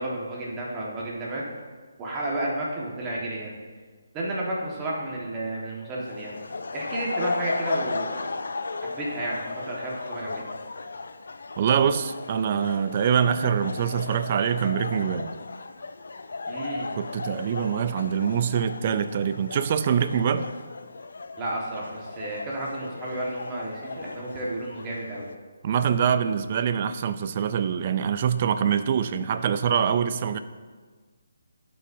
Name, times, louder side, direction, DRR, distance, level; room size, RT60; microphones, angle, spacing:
voice 1, 0.0-1.4 2.0-3.5 4.1-6.4 6.7-8.3 8.8-10.5 16.5-16.9 21.4-25.3, right 1 dB, 20° right, -4 dB, 1.4 m, -32 dB
sound 1, 6.0-25.3, left 3 dB, 75° left, 0.4 m, -35 dB
voice 2, 11.6-15.3 17.0-20.5 25.6-30.4, right 8 dB, 35° right, 11 dB, 0.4 m, -24 dB
11.5 x 5.5 x 2.6 m, 1.5 s
hypercardioid pair, 160°, 0 cm